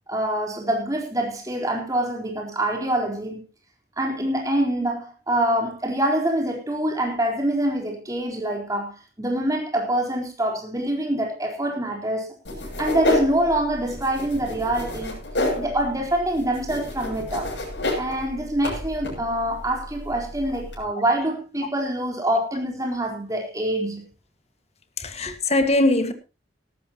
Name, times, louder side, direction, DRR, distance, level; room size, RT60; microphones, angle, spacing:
voice 1, 0.1-3.4 4.0-12.3 12.8-15.1 15.6-17.5 18.0-24.1, right 1 dB, 20° right, 4.0 m, -25 dB
sound 1, 12.4-20.8, left 2 dB, 75° left, 7.5 m, -30 dB
voice 2, 25.0-26.1, left 2 dB, 35° left, 1.8 m, -21 dB
18.0 x 13.0 x 2.9 m
head